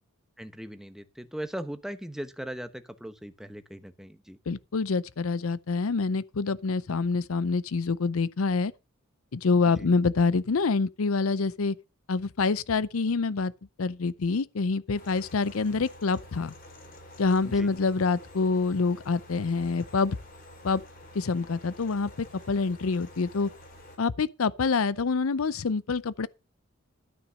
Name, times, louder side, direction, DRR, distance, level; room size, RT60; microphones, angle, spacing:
voice 1, 0.4-4.4 9.6-9.9 17.4-17.7, equal, ahead, 1.0 m, -39 dB
voice 2, 4.5-8.7 9.3-11.8 12.1-13.5 13.8-16.5 17.2-20.2 20.6-20.8 21.1-23.5 24.0-26.3, left 4 dB, 90° left, 0.6 m, -26 dB
sound 1, 14.9-24.0, left 1 dB, 45° left, 4.0 m, -49 dB
13.0 x 6.1 x 6.2 m
head